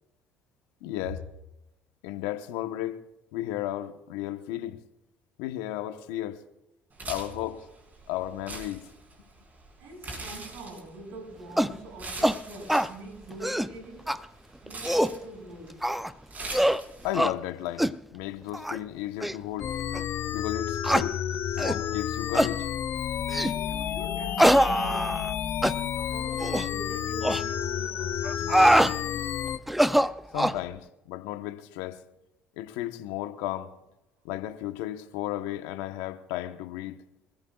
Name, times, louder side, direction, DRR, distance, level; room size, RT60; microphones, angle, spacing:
voice 1, 0.8-1.2 2.0-3.0 3.3-4.8 5.4-6.4 7.1-7.6 8.1-8.8 17.0-19.7 20.3-21.2 21.5-22.7 30.3-32.0 32.6-33.7 34.2-37.0, left 14 dB, 75° left, 1.1 m, -34 dB
sound 1, 6.9-17.3, right 2 dB, 35° right, 5.2 m, -43 dB
voice 2, 9.8-14.2 14.6-15.8 23.3-25.3 26.0-29.4, right 1 dB, 70° right, 6.2 m, -44 dB
sound 2, 11.6-11.8 12.2-12.4 12.7-12.9 13.3-13.7 14.1-14.2 14.7-15.2 15.8-16.1 16.5-16.8 17.1-17.3 17.8-18.0 18.5-18.8 19.2-19.3 19.9-20.0 20.8-21.1 21.6-21.8 22.3-22.5 23.3-23.6 24.4-25.3 25.6-25.8 26.4-26.7 27.2-27.4 28.2-28.9 29.7-30.6, equal, ahead, 0.5 m, -23 dB
sound 3, 19.6-29.6, left 10 dB, 50° left, 0.7 m, -31 dB
26.5 x 15.0 x 2.4 m
hypercardioid pair, 65°, 5 cm